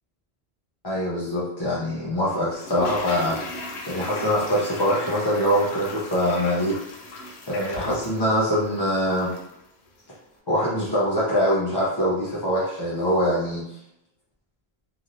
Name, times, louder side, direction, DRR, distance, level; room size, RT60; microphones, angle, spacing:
voice 1, 0.8-3.4 3.9-6.7 7.5-9.3 10.5-13.6, equal, 30° left, -7 dB, 0.5 m, -23 dB
Toilet flush, 2.5-9.6 9.9-10.0, left 2 dB, 90° left, 0.9 m, -38 dB
3.1 x 2.6 x 2.5 m, 0.78 s
omnidirectional pair, 1.1 m